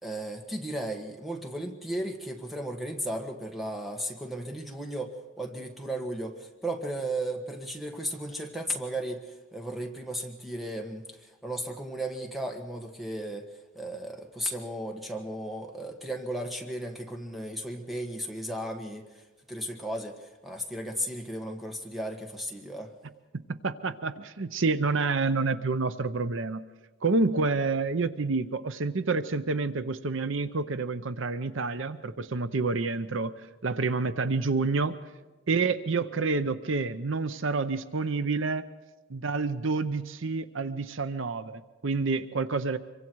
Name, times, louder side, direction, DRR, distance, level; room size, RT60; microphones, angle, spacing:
voice 1, 0.0-5.1 5.4-9.3 9.5-13.4 13.7-19.1 19.5-22.9, right 1 dB, ahead, 2 dB, 1.6 m, -35 dB
voice 2, 23.5-26.6 27.0-33.3 33.6-35.0 35.5-38.6 39.1-42.8, right 3 dB, 65° right, 12 dB, 0.7 m, -28 dB
25.5 x 23.5 x 4.7 m, 1.2 s
head